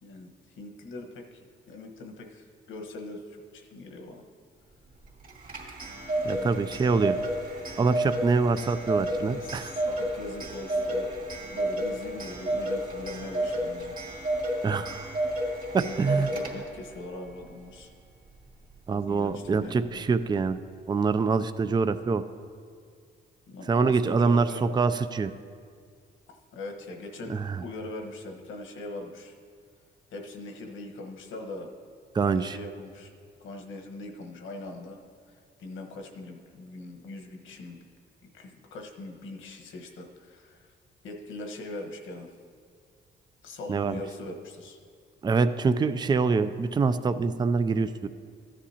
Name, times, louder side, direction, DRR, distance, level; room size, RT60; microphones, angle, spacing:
voice 1, 0.0-4.2 6.2-7.1 8.6-8.7 9.2-11.1 11.5-13.9 15.8-17.9 18.9-20.0 23.5-24.7 26.3-29.3 30.1-31.7 32.2-33.1 33.4-35.0 35.6-37.9 38.2-40.7 41.0-42.3 43.4-44.8, left 2 dB, 80° left, 3 dB, 1.3 m, -41 dB
Clock, 5.2-16.9, right 1 dB, 45° right, 2.4 m, -31 dB
voice 2, 6.2-7.2 7.8-9.7 14.6-15.2 15.7-16.3 18.9-20.6 20.9-22.2 23.7-25.3 27.3-27.6 32.1-32.6 43.7-44.0 45.2-48.1, right 4 dB, 20° right, 11 dB, 0.4 m, -25 dB
14.0 x 9.9 x 2.9 m, 2.1 s
cardioid pair, 90°, 20 cm